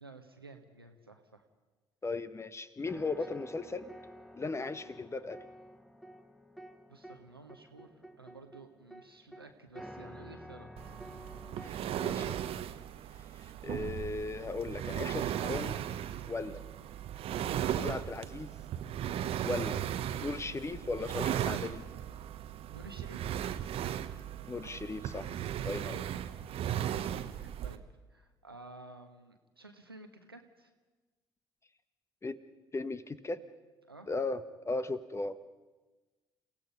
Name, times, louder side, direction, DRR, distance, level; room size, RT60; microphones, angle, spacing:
voice 1, 0.0-1.4 6.9-10.7 22.7-23.3 25.9-26.2 27.3-27.8 28.1-30.7 33.9-34.1, right 2 dB, 90° right, 5 dB, 1.3 m, -53 dB
voice 2, 2.0-3.9 4.3-5.4 11.6-12.5 13.6-15.8 16.2-16.6 17.6-18.5 19.4-19.9 20.2-21.8 24.5-25.4 25.6-26.0 32.2-32.4 32.7-33.4 34.1-35.4, left 3 dB, 25° left, 12 dB, 1.3 m, -37 dB
sound 1, 2.8-11.7, equal, ahead, 1.4 m, -51 dB
sound 2, 10.8-27.8, right 10 dB, 50° right, 1.1 m, -37 dB
29.5 x 17.0 x 5.5 m, 1.2 s
figure-of-eight pair, 50°, 12 cm